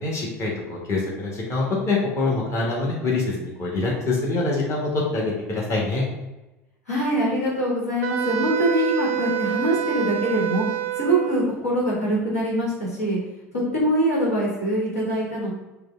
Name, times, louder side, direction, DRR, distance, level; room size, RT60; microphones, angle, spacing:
voice 1, 0.0-6.0, left 3 dB, 35° left, -3 dB, 1.4 m, -25 dB
voice 2, 6.9-10.6 10.9-13.2 13.5-15.5, right 1 dB, 85° left, -5 dB, 1.4 m, -23 dB
Wind instrument woodwind instrument, 8.0-11.5, right 13 dB, 70° right, 0.4 m, -27 dB
5.0 x 2.3 x 3.7 m, 1.0 s
hypercardioid pair, 75°, 8 cm